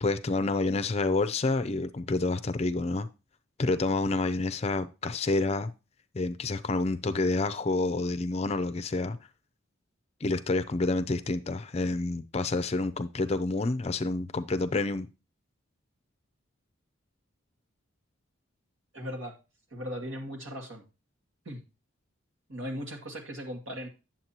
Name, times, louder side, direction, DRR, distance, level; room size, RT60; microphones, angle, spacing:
voice 1, 0.0-3.1 3.6-5.7 6.1-9.2 10.2-15.1, left 2 dB, 30° left, 0.4 m, -28 dB
voice 2, 18.9-19.3 19.7-20.8 21.5-21.6 22.5-23.9, equal, 75° right, 2.2 m, -38 dB
9.3 x 7.4 x 2.9 m
head